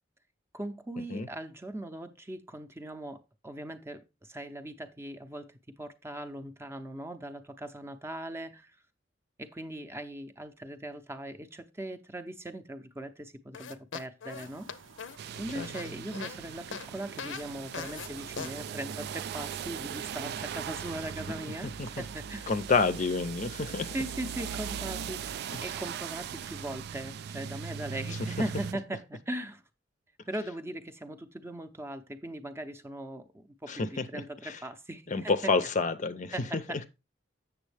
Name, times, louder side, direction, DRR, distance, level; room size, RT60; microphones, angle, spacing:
voice 1, 0.5-8.8 9.4-14.7 15.4-22.5 23.9-29.6 30.3-35.5 36.3-36.8, right 1 dB, 15° right, 0.6 m, -39 dB
sound 1, 13.5-16.4 16.7-16.9 17.2-17.4 17.7-18.1 18.4-18.5, left 6 dB, 80° left, 0.6 m, -40 dB
sound 2, 14.3-26.7, right 4 dB, 90° right, 0.9 m, -53 dB
sound 3, 15.2-28.7, right 7 dB, 60° right, 0.3 m, -39 dB
voice 2, 22.5-23.9 25.5-25.6 33.7-34.6 35.1-36.8, left 4 dB, 40° left, 0.5 m, -29 dB
7.4 x 7.0 x 3.3 m
head